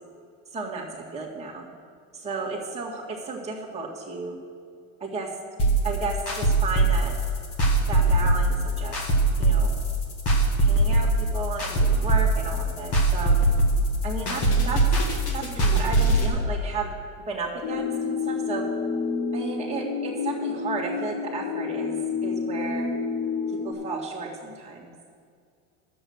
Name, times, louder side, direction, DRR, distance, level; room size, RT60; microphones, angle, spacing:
voice 1, 0.5-0.9 1.1-1.6 2.1-4.4 5.0-5.3 5.8-7.1 7.9-9.0 9.4-9.7 10.6-13.3 14.0-14.8 15.3-16.9 17.3-18.6 19.3-22.0 22.2-22.9 23.6-24.9, right 4 dB, 15° right, -4 dB, 2.0 m, -33 dB
sound 1, 5.6-16.3, right 2 dB, 35° left, 1.9 m, -21 dB
sound 2, 17.6-23.7, left 5 dB, 85° left, 1.6 m, -29 dB
10.5 x 7.1 x 8.0 m, 2.2 s
supercardioid pair, 145°, 41 cm